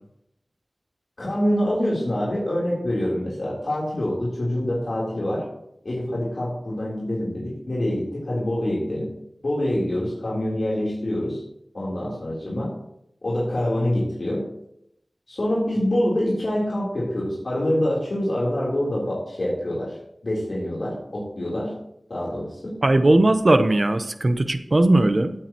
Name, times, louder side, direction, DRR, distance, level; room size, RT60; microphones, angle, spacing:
voice 1, 1.2-5.5 5.8-9.1 9.4-11.4 11.7-12.7 13.2-14.4 15.3-20.0 20.2-21.7 22.1-22.7, left 1 dB, 65° left, -6 dB, 3.8 m, -25 dB
voice 2, 22.8-25.3, right 2 dB, 50° right, 9 dB, 0.9 m, -18 dB
16.5 x 8.7 x 3.1 m, 0.77 s
wide cardioid pair, 45°, 0 cm